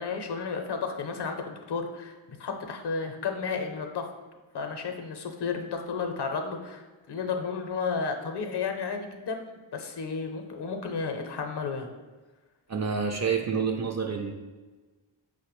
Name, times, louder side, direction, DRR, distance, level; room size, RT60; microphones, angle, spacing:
voice 1, 0.0-4.1 4.5-9.4 9.7-11.9, left 5 dB, 60° left, 5 dB, 0.6 m, -32 dB
voice 2, 12.7-14.3, right 5 dB, 35° right, 3 dB, 0.4 m, -28 dB
4.8 x 2.1 x 3.0 m, 1.3 s
cardioid pair, 60°, 48 cm